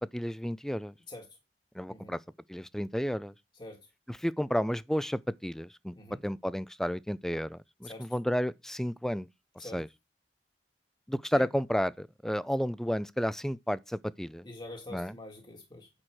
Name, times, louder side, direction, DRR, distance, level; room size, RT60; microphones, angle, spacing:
voice 1, 0.1-0.9 1.8-2.2 2.5-3.3 4.1-5.9 6.2-9.3 9.6-9.9 11.1-14.5 14.9-15.1, equal, 5° left, 0.4 m, -32 dB
voice 2, 14.4-15.9, left 2 dB, 25° left, 1.5 m, -45 dB
9.0 x 6.1 x 4.8 m
head